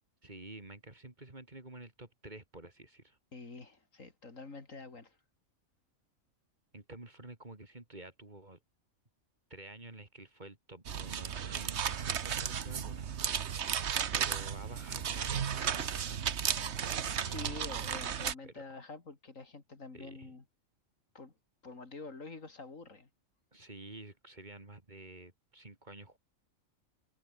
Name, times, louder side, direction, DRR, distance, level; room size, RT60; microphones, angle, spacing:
voice 1, 0.2-3.2 6.7-8.6 9.5-11.9 12.2-13.1 14.1-16.5 18.4-18.6 19.9-20.3 23.5-26.2, right 2 dB, 35° right, 3.0 m, -50 dB
voice 2, 3.3-5.2 17.2-20.4 21.1-21.3 21.6-23.1, left 3 dB, 70° left, 3.4 m, -47 dB
sound 1, 10.9-18.3, right 8 dB, 55° right, 1.3 m, -34 dB
omnidirectional pair, 1.4 m